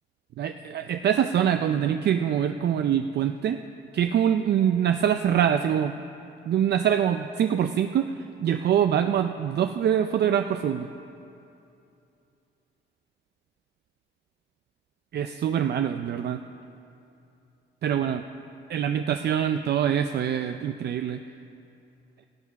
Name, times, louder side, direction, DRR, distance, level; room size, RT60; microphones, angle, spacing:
voice 1, 0.4-3.6 3.9-5.9 6.5-10.9 15.1-16.4 17.8-18.2 18.7-21.2, right 9 dB, 55° right, 7 dB, 0.5 m, -24 dB
17.5 x 7.3 x 5.9 m, 2.7 s
cardioid pair, 90°, 20 cm